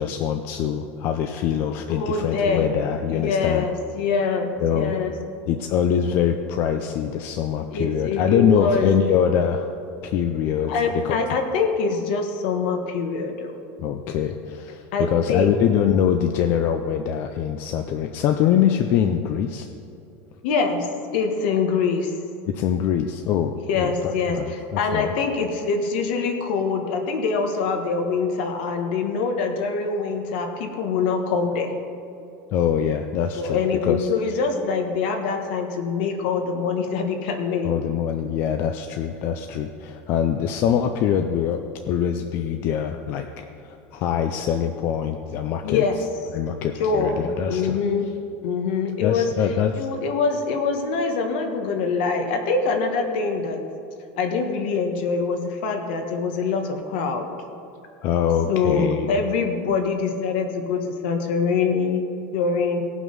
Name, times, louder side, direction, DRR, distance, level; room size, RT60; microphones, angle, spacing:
voice 1, 0.0-3.7 4.6-4.9 5.5-9.7 10.0-11.2 13.8-19.7 22.5-25.1 32.5-34.1 37.6-41.6 41.9-43.3 43.6-45.8 46.3-47.8 49.0-49.9 58.0-59.1, left 8 dB, 35° left, 6 dB, 0.5 m, -23 dB
voice 2, 1.9-2.7 3.1-5.1 7.7-8.9 10.7-13.6 14.9-15.6 20.4-20.9 21.1-22.1 23.7-31.7 33.3-37.7 45.6-46.0 46.8-48.1 48.4-49.3 49.8-53.6 54.2-57.3 58.5-62.8, left 4 dB, 65° left, 4 dB, 1.4 m, -24 dB
17.5 x 6.0 x 5.4 m, 2.8 s
supercardioid pair, 175°, 6 cm